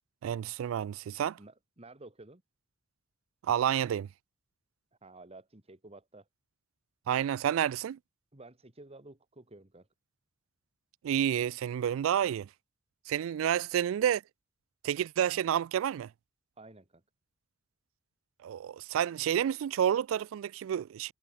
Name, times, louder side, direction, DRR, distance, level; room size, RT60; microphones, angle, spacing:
voice 1, 0.2-1.4 3.4-4.1 7.1-8.0 11.0-12.5 13.1-14.2 14.8-16.1 18.4-21.1, right 9 dB, 80° right, 0.3 m, -29 dB
voice 2, 1.2-2.4 5.0-6.3 8.3-9.9 16.6-17.0, right 2 dB, 30° right, 2.0 m, -52 dB
head